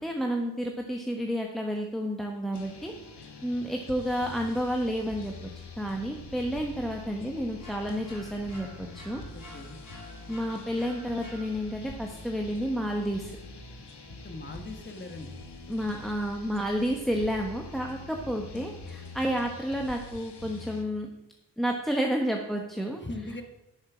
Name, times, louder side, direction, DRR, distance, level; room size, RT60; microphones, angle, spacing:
voice 1, 0.0-2.9 3.4-5.3 5.8-9.2 10.3-13.3 15.7-21.1 21.6-23.0, equal, ahead, 1 dB, 1.2 m, -30 dB
sound 1, 2.5-20.8, left 3 dB, 85° left, 1.4 m, -45 dB
sound 2, 7.6-11.9, left 1 dB, 55° left, 4.7 m, -50 dB
voice 2, 9.3-9.8 14.2-15.3 23.0-23.4, left 2 dB, 25° left, 5 dB, 1.5 m, -40 dB
10.5 x 6.5 x 6.2 m, 0.91 s
wide cardioid pair, 60°, 40 cm